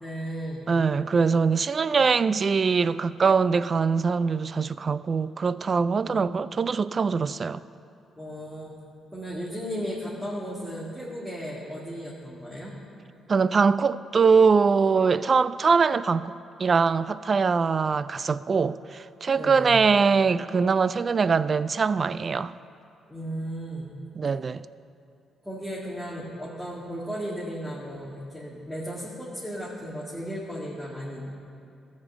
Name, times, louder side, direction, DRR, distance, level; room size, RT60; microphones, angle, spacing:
voice 1, 0.0-0.7 6.1-6.2 8.2-8.7 9.1-12.7 19.3-19.8 23.1-24.0 25.4-31.3, equal, ahead, 2.0 m, -35 dB
voice 2, 0.7-7.6 13.3-16.3 16.6-22.5 24.2-24.6, right 5 dB, 45° right, 0.3 m, -22 dB
14.0 x 5.3 x 7.5 m
supercardioid pair, 65°, 0 cm